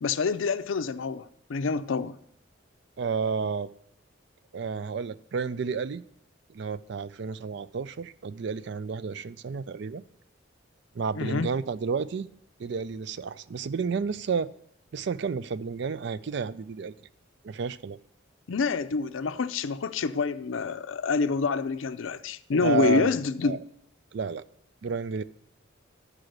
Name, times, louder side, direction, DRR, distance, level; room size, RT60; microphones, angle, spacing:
voice 1, 0.0-2.2 11.2-11.5 18.5-23.6, left 4 dB, 75° left, 0.5 m, -27 dB
voice 2, 3.0-3.7 4.5-6.0 6.5-10.0 10.9-12.3 12.6-14.5 14.9-16.9 17.4-18.0 22.6-23.1 23.4-23.6 24.1-24.4 24.8-25.2, right 5 dB, 60° right, 0.4 m, -31 dB
12.0 x 4.9 x 6.5 m
head